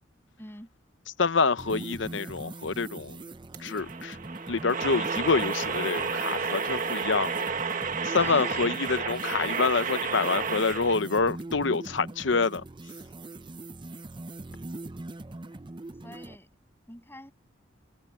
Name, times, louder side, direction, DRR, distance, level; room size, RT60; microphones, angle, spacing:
voice 1, 0.4-0.7 8.1-8.7 15.4-15.6 16.0-16.5 16.9-17.3, left 1 dB, 10° left, 7.3 m, -46 dB
voice 2, 1.2-3.2 3.6-4.2 4.5-7.5 8.0-12.6, left 4 dB, 70° left, 0.8 m, -27 dB
sound 1, 1.6-16.4, right 2 dB, 25° right, 0.6 m, -41 dB
sound 2, 3.5-11.0, right 5 dB, 45° right, 1.5 m, -31 dB
head